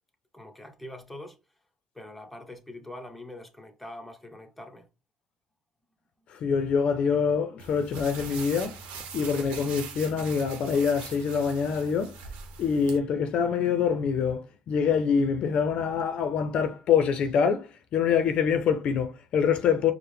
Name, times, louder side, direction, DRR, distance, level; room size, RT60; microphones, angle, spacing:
voice 1, 0.3-1.4 1.9-4.9, left 1 dB, 5° left, 0.9 m, -43 dB
voice 2, 6.3-8.8 9.1-12.2 12.6-19.9, left 6 dB, 60° left, 0.5 m, -25 dB
sound 1, 7.6-13.0, right 5 dB, 80° right, 0.9 m, -41 dB
4.6 x 2.1 x 3.4 m
cardioid pair, 95°, 2 cm